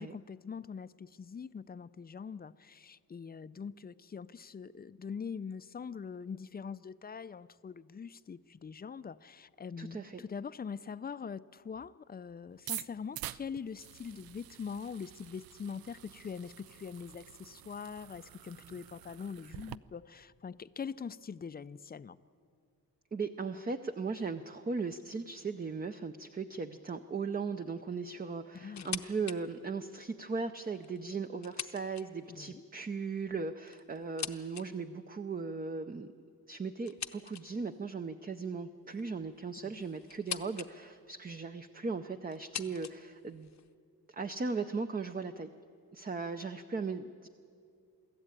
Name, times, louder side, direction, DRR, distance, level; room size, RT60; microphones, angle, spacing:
voice 1, 0.0-22.2 28.5-28.9 32.3-32.6, left 6 dB, 25° left, 15 dB, 0.4 m, -43 dB
voice 2, 9.8-10.2 23.1-36.1 36.5-43.5 44.1-45.5 45.9-47.3, right 4 dB, 25° right, 8 dB, 0.6 m, -38 dB
sound 1, 12.5-19.8, right 13 dB, 80° right, 0.5 m, -47 dB
sound 2, 28.7-29.4 29.8-29.9 30.7-32.4 33.3-34.7 36.9-37.7 38.9-40.7 41.0-41.6 42.3-43.7, left 8 dB, 50° left, 0.8 m, -43 dB
24.0 x 13.5 x 9.0 m, 2.3 s
wide cardioid pair, 105°, 36 cm